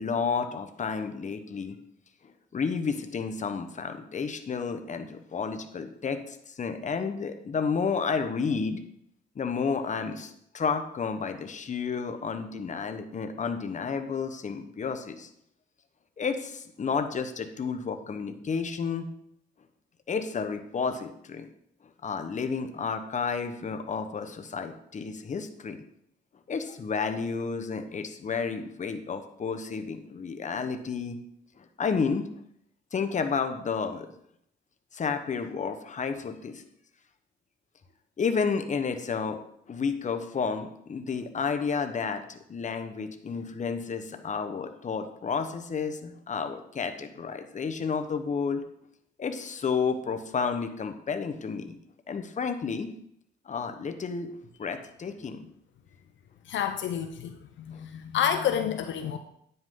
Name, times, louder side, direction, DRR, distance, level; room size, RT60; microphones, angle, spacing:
voice 1, 0.0-1.8 2.5-8.8 9.3-15.3 16.2-19.1 20.1-21.5 22.0-25.8 26.5-31.2 31.6-32.3 32.9-34.1 34.9-36.6 38.2-39.4 39.7-48.6 49.2-51.8 52.1-52.9 53.5-55.5 57.7-57.8, left 5 dB, 40° left, 8 dB, 1.0 m, -31 dB
voice 2, 56.5-59.2, left 9 dB, 70° left, 7 dB, 0.7 m, -29 dB
9.5 x 8.0 x 3.8 m, 0.72 s
cardioid pair, 90°, 20 cm